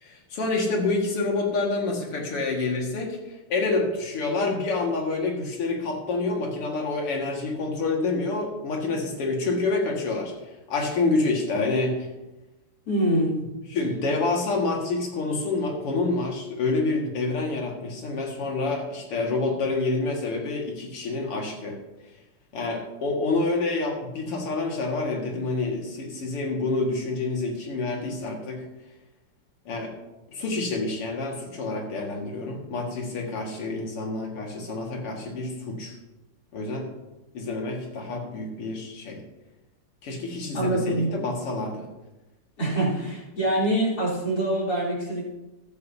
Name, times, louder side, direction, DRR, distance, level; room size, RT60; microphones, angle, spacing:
voice 1, 0.0-10.3 10.7-12.1 13.7-21.8 22.5-28.6 29.7-29.9 30.3-35.9 36.5-36.9 37.3-39.2 40.0-41.9, left 3 dB, 90° left, 0 dB, 2.9 m, -27 dB
voice 2, 12.9-13.4 40.5-41.1 42.6-45.3, right 1 dB, 45° left, -6 dB, 3.9 m, -25 dB
14.0 x 12.0 x 2.8 m, 1.0 s
omnidirectional pair, 2.4 m